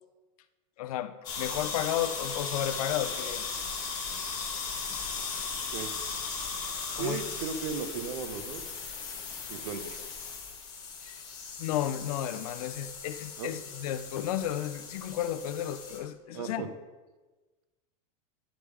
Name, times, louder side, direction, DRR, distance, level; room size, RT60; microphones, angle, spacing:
voice 1, 0.8-3.5 6.9-7.2 11.0-11.2 11.6-16.7, left 11 dB, 75° left, 10 dB, 0.5 m, -33 dB
sound 1, 1.2-16.0, left 5 dB, 20° left, 1.1 m, -37 dB
voice 2, 7.0-8.6 9.5-10.0 13.4-13.5 16.3-16.7, right 6 dB, 80° right, 9 dB, 0.8 m, -35 dB
10.0 x 3.4 x 4.7 m, 1.2 s
supercardioid pair, 175°, 19 cm